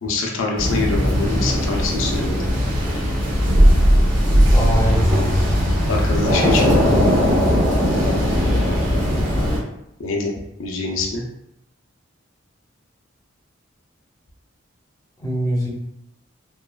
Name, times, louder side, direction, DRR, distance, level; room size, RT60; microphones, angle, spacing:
voice 1, 0.0-2.5 5.8-6.9 8.4-9.0 10.0-10.3 10.6-11.2, left 3 dB, 85° left, 0 dB, 0.5 m, -25 dB
sound 1, 0.6-9.6, equal, 80° right, 1.4 m, -18 dB
voice 2, 4.5-5.1 15.2-15.7, right 1 dB, 20° left, -4 dB, 0.5 m, -23 dB
3.1 x 2.2 x 2.2 m, 0.80 s
head